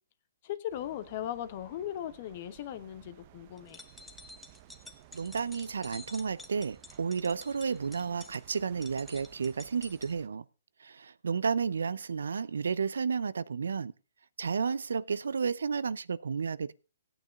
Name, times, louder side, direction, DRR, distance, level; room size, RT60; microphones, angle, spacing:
voice 1, 0.4-3.8, left 11 dB, 45° left, 1.3 m, -38 dB
sound 1, 0.7-10.3, right 13 dB, 35° right, 0.7 m, -57 dB
sound 2, 3.6-10.1, left 2 dB, 5° left, 1.0 m, -50 dB
voice 2, 5.1-10.4 10.8-13.9 14.4-16.7, right 5 dB, 80° right, 0.6 m, -32 dB
16.0 x 8.9 x 3.6 m
hypercardioid pair, 145°, 0 cm